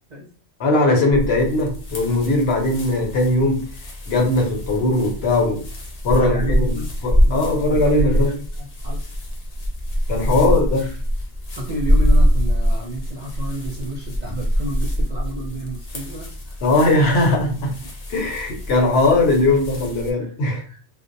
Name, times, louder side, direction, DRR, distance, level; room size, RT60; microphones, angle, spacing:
voice 1, 0.6-3.7 4.1-5.6 6.0-6.8 7.0-8.3 10.1-10.9 16.6-17.8 18.1-20.6, left 2 dB, 70° left, 0.9 m, -19 dB
sound 1, 1.1-20.1, equal, 50° left, 0.5 m, -24 dB
voice 2, 6.1-6.9 7.2-9.1 10.3-11.0 11.6-16.6 20.2-20.8, right 1 dB, 55° right, 0.5 m, -32 dB
2.5 x 2.0 x 2.5 m
omnidirectional pair, 1.1 m